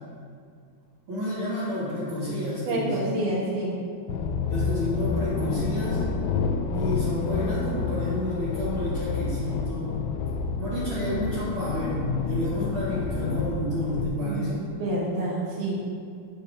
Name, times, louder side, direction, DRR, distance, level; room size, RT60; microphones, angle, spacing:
voice 1, 1.1-3.0 4.5-6.0 6.7-10.0 10.6-14.7, left 1 dB, 40° right, -13 dB, 2.9 m, -30 dB
voice 2, 2.7-3.8 12.6-13.3 14.2-14.5 14.8-15.7, right 1 dB, 85° right, -5 dB, 3.9 m, -29 dB
sound 1, 4.1-14.1, left 5 dB, 80° left, 2.2 m, -29 dB
13.5 x 5.7 x 3.8 m, 2.2 s
omnidirectional pair, 4.3 m